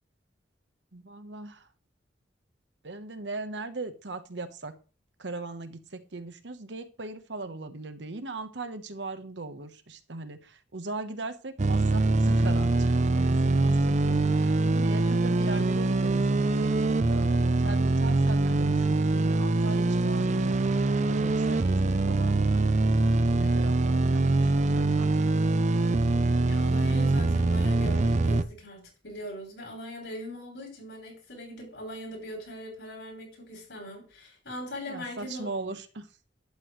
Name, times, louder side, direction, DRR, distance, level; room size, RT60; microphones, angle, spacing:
voice 1, 0.9-1.7 2.8-4.7 5.2-20.6 21.0-22.6 23.4-25.5 34.9-36.1, right 2 dB, 70° right, 10 dB, 1.1 m, -39 dB
sound 1, 11.6-28.4, right 2 dB, 40° right, 0.6 m, -24 dB
voice 2, 26.4-35.7, equal, 75° left, -1 dB, 6.8 m, -41 dB
11.5 x 9.9 x 3.2 m, 0.36 s
head